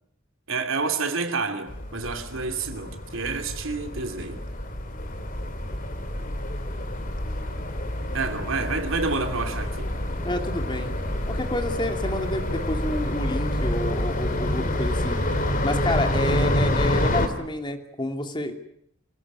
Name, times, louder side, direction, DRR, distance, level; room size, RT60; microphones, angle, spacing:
voice 1, 0.5-4.4 8.1-9.9, right 4 dB, 75° right, 2.9 m, -29 dB
sound 1, 1.7-17.3, left 1 dB, 40° left, 2.9 m, -27 dB
voice 2, 10.2-10.9 11.3-15.2 15.6-18.5, left 1 dB, 25° left, 2.8 m, -29 dB
26.5 x 17.5 x 9.7 m
head